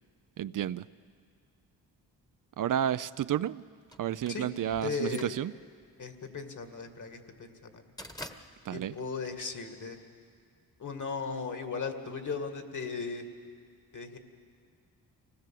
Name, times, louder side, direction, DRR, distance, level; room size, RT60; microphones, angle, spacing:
voice 1, 0.4-0.8 2.6-3.6 4.0-5.5 8.6-8.9, right 10 dB, 55° right, 15 dB, 0.5 m, -31 dB
sound 1, 3.9-10.1, left 1 dB, 10° left, 1.3 m, -49 dB
voice 2, 4.8-5.3 6.0-7.8 8.7-10.0 10.8-13.2 13.9-14.2, left 4 dB, 50° left, 7 dB, 2.1 m, -37 dB
24.5 x 18.5 x 7.6 m, 2.2 s
cardioid pair, 75°, 40 cm